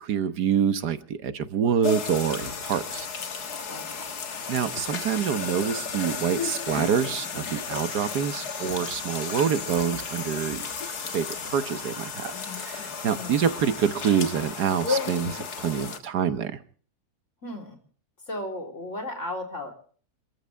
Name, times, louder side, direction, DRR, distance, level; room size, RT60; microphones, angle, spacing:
voice 1, 0.0-3.1 4.5-10.6 11.1-16.5, right 8 dB, 85° right, 11 dB, 1.7 m, -26 dB
sound 1, 1.8-16.0, left 5 dB, 75° left, 2.2 m, -33 dB
voice 2, 3.7-4.2 13.0-13.7 17.4-17.8 18.2-19.7, left 1 dB, 50° left, 3 dB, 4.3 m, -36 dB
28.0 x 14.0 x 3.5 m, 0.44 s
omnidirectional pair, 1.7 m